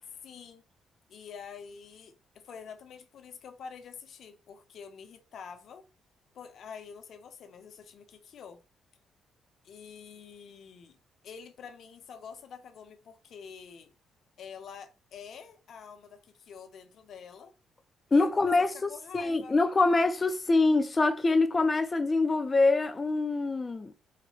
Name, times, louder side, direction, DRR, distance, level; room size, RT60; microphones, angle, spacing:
voice 1, 0.2-0.6 1.1-5.9 6.3-8.6 9.6-11.0 11.2-13.9 14.4-17.5 18.1-19.6, left 6 dB, 65° left, 0.7 m, -47 dB
voice 2, 18.1-23.9, left 3 dB, 30° left, 0.5 m, -25 dB
4.0 x 2.2 x 3.2 m
cardioid pair, 90°, 0 cm